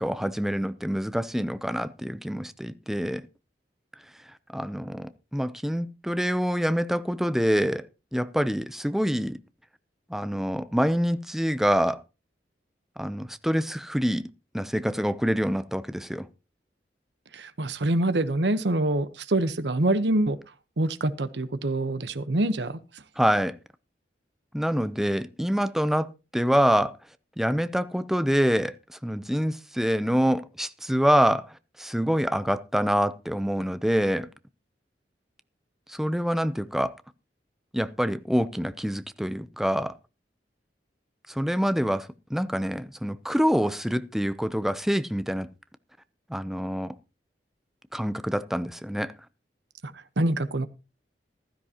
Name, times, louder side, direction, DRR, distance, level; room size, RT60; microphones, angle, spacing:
voice 1, 0.0-3.3 4.5-7.8 8.1-9.4 10.1-12.0 13.0-14.2 14.5-16.3 23.2-23.6 24.5-26.1 26.3-26.9 27.4-34.3 35.9-36.9 37.7-39.9 41.3-45.5 46.3-46.9 47.9-49.1, equal, ahead, 0.6 m, -26 dB
voice 2, 17.3-20.4 20.8-22.8 49.8-50.7, right 1 dB, 75° right, 0.9 m, -25 dB
15.0 x 12.5 x 2.9 m
head